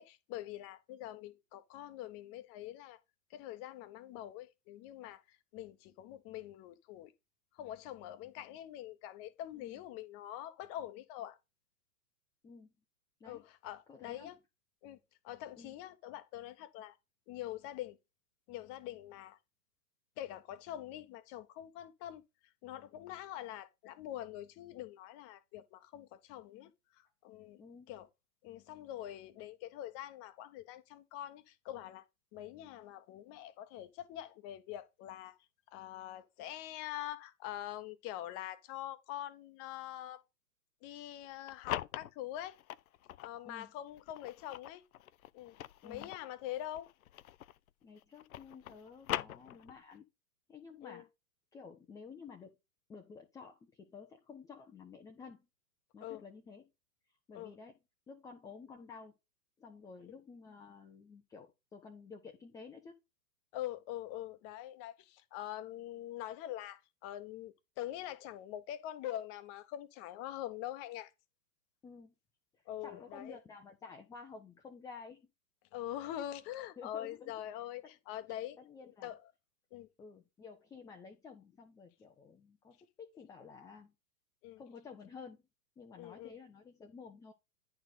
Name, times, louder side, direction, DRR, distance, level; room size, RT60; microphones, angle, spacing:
voice 1, 0.0-3.0 3.3-7.1 7.5-11.4 13.2-14.4 14.8-15.0 15.2-17.0 17.3-18.0 18.5-19.4 20.2-22.2 22.6-27.6 27.9-28.1 28.4-32.0 32.3-35.4 35.7-40.2 40.8-42.5 43.2-44.8 45.3-45.6 45.8-46.9 50.8-51.0 56.0-56.2 57.3-57.5 63.5-71.1 72.7-73.4 75.7-78.6 79.0-79.2 79.7-79.9 84.4-84.6 86.0-86.3, left 13 dB, 30° left, 0.9 m, -44 dB
voice 2, 13.9-14.3 15.6-15.8 27.6-27.9 43.4-43.7 45.8-46.1 47.8-50.0 50.5-51.1 51.5-52.6 52.9-55.5 55.9-56.7 57.3-57.7 58.1-59.1 59.6-63.0 71.8-72.1 72.8-75.3 76.8-77.3 77.8-77.9 78.6-79.1 80.0-83.9 84.6-85.4 85.8-87.3, left 5 dB, 10° left, 0.5 m, -52 dB
sound 1, 41.2-43.4 43.9-47.7 48.0-50.0, left 13 dB, 65° left, 0.6 m, -43 dB
9.8 x 4.3 x 4.1 m
hypercardioid pair, 110°, 46 cm